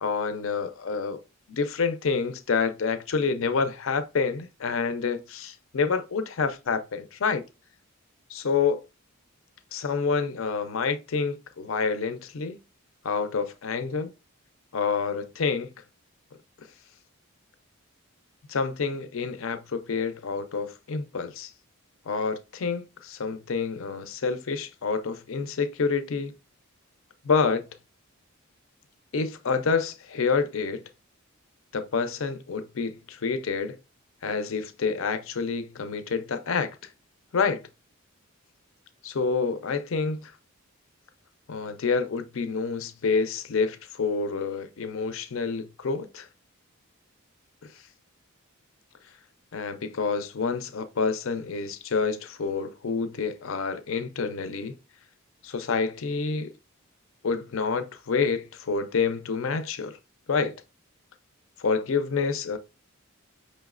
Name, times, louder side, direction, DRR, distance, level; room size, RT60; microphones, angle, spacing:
voice 1, 0.0-1.2 1.5-7.4 8.3-8.8 9.7-12.6 13.0-14.1 14.7-15.7 18.5-21.5 22.1-26.3 27.2-27.6 29.1-30.8 31.7-33.8 34.2-36.7 37.3-37.6 39.0-40.3 41.5-46.3 47.6-47.7 49.5-54.8 55.4-56.5 57.2-60.0 60.3-60.5 61.6-62.6, left 5 dB, 65° left, 0.5 m, -28 dB
5.5 x 3.1 x 2.4 m
head